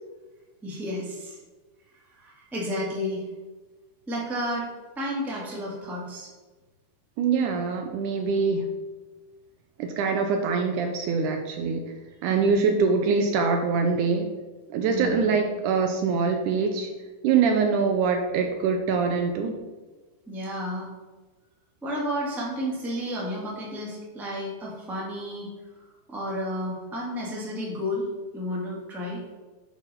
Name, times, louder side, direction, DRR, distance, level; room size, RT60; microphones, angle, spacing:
voice 1, 0.6-1.4 2.1-3.2 4.1-4.7 4.9-6.3 12.3-12.5 14.8-15.2 20.3-20.9 21.8-25.5 26.1-28.1 28.3-29.2, equal, ahead, -5 dB, 1.1 m, -31 dB
voice 2, 7.2-8.7 9.8-11.9 12.2-14.3 14.7-16.9 17.2-19.6, right 5 dB, 80° right, 4 dB, 1.9 m, -24 dB
8.1 x 4.6 x 5.6 m, 1.3 s
omnidirectional pair, 3.9 m